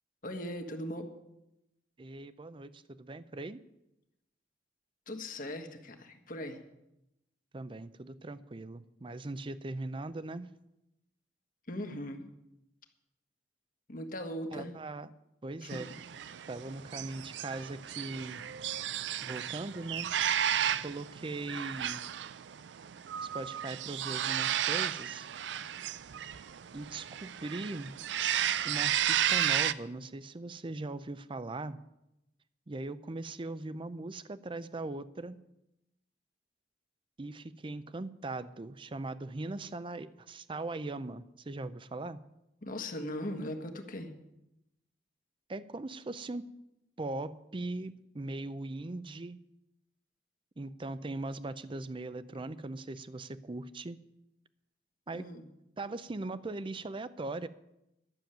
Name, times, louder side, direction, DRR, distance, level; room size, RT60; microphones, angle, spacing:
voice 1, 0.2-1.1 5.1-6.6 11.7-12.3 13.9-14.7 15.6-15.8 42.6-44.1 55.1-55.5, left 1 dB, 50° left, 5 dB, 1.5 m, -39 dB
voice 2, 2.0-3.6 7.5-10.5 14.5-15.1 15.4-15.9 16.5-18.4 19.2-20.1 20.8-22.0 23.2-25.3 26.7-27.9 28.6-31.8 32.7-35.4 37.2-42.2 45.5-46.5 47.0-49.4 50.6-54.0 55.1-55.3 55.8-57.5, right 2 dB, 30° right, 15 dB, 0.5 m, -40 dB
sound 1, 15.7-29.7, right 10 dB, 85° right, 0.4 m, -33 dB
12.0 x 7.1 x 9.0 m, 0.88 s
head